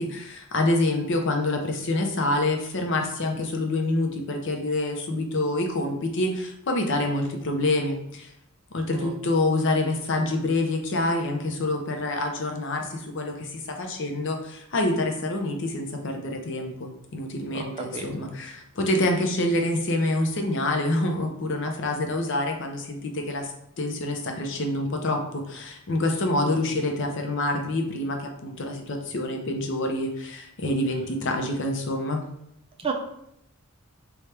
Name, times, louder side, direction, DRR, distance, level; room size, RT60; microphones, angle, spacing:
voice 1, 0.0-8.3 8.7-32.2, left 2 dB, 55° left, 3 dB, 0.6 m, -27 dB
voice 2, 17.5-18.3 26.5-26.6 32.8-32.9, right 4 dB, 25° right, 3 dB, 0.4 m, -33 dB
3.3 x 2.3 x 4.2 m, 0.77 s
head